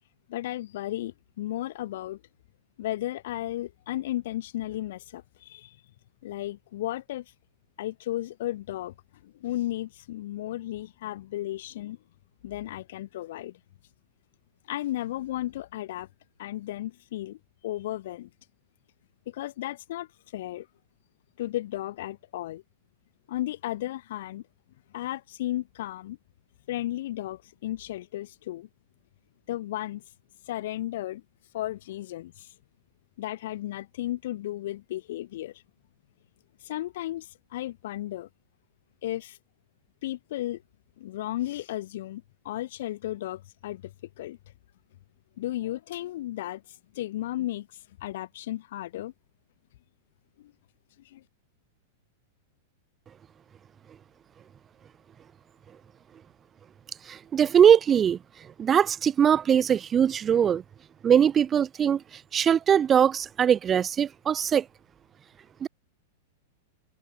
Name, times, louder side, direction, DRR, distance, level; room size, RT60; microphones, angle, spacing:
voice 1, 0.3-2.2 2.8-5.8 6.2-7.2 7.8-8.9 9.2-12.0 12.4-13.6 14.7-16.1 16.4-17.4 17.6-18.3 19.3-20.1 20.3-20.7 21.4-22.6 23.3-24.4 24.9-26.2 26.7-28.7 29.5-30.0 30.5-31.2 31.5-32.5 33.2-35.5 36.6-38.3 39.0-39.4 40.0-40.6 41.0-43.9 44.2-44.4 45.4-46.6 46.9-47.7 48.0-49.1 50.4-50.5 51.1-51.2, left 14 dB, 70° left, 5.9 m, -34 dB
voice 2, 57.1-58.2 58.6-60.6 61.0-62.0 62.3-64.6 65.6-65.7, right 8 dB, 25° right, 0.6 m, -21 dB
hypercardioid pair, 125°, 0 cm